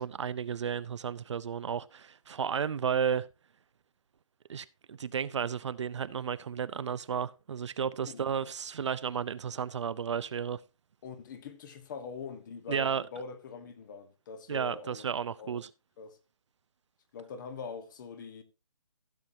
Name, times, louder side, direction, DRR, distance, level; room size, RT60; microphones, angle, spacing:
voice 1, 0.0-3.3 4.5-10.6 12.7-13.0 14.5-15.7, right 7 dB, 55° right, 0.6 m, -33 dB
voice 2, 11.0-15.1 15.4-15.6 16.0-16.2 17.1-18.4, left 5 dB, 35° left, 1.4 m, -43 dB
15.5 x 7.4 x 2.7 m
hypercardioid pair, 155°, 18 cm